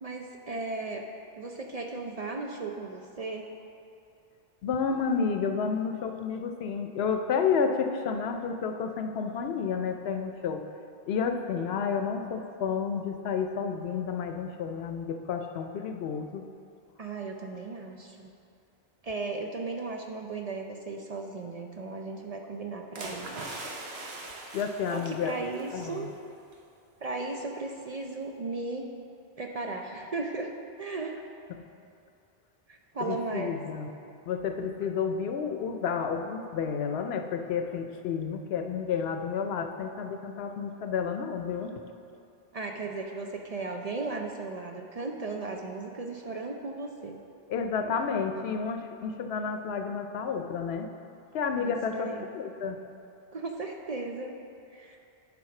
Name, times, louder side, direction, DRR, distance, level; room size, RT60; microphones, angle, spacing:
voice 1, 0.0-1.0 1.4-3.5 14.4-14.5 17.0-18.3 19.0-23.3 24.9-26.1 27.0-28.9 29.4-30.5 30.8-31.2 32.7-33.5 42.5-47.2 51.6-52.3 53.3-54.3 54.7-55.0, right 3 dB, 50° right, 2 dB, 0.5 m, -36 dB
voice 2, 4.6-10.7 11.1-16.4 24.5-25.3 25.7-26.1 31.5-31.6 33.0-33.9 34.3-41.8 47.5-50.9 51.3-52.8, left 6 dB, 80° left, 6 dB, 0.8 m, -31 dB
sound 1, 23.0-26.0 26.3-26.5, right 2 dB, 80° right, 1.2 m, -41 dB
10.5 x 3.7 x 5.8 m, 2.6 s
omnidirectional pair, 1.0 m